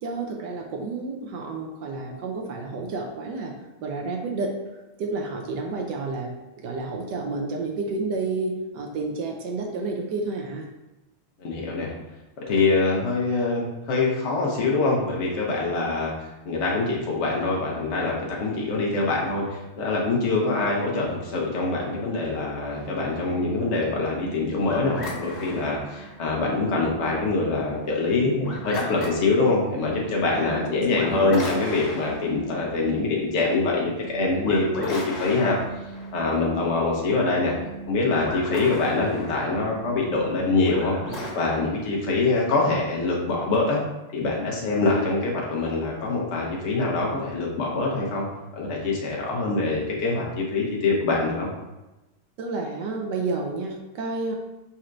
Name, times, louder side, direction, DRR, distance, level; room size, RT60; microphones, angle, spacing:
voice 1, 0.0-3.5 3.8-4.5 5.0-10.7 30.4-31.3 52.4-54.3, right 3 dB, 75° right, 2 dB, 1.1 m, -30 dB
voice 2, 11.4-11.9 12.5-16.1 16.4-35.6 36.1-37.5 37.9-41.0 41.3-43.8 44.1-48.3 48.5-51.5, left 3 dB, 75° left, -2 dB, 0.6 m, -24 dB
sound 1, 22.7-41.3, equal, 40° left, 1.1 m, -37 dB
4.4 x 4.2 x 2.5 m, 1.0 s
omnidirectional pair, 2.2 m